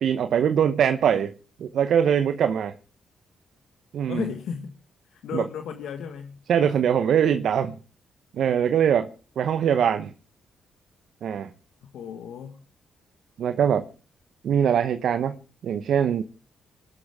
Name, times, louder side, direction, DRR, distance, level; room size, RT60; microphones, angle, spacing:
voice 1, 0.0-1.3 1.6-2.7 3.9-4.2 5.3-5.4 6.5-7.8 8.3-9.1 9.4-10.1 11.2-11.5 13.4-13.8 14.4-15.4 15.6-16.2, right 8 dB, 70° right, 0.9 m, -22 dB
voice 2, 4.1-4.7 5.1-6.4 11.8-12.6, left 7 dB, 75° left, 1.7 m, -34 dB
26.0 x 12.5 x 3.6 m
hypercardioid pair, 45°, 0 cm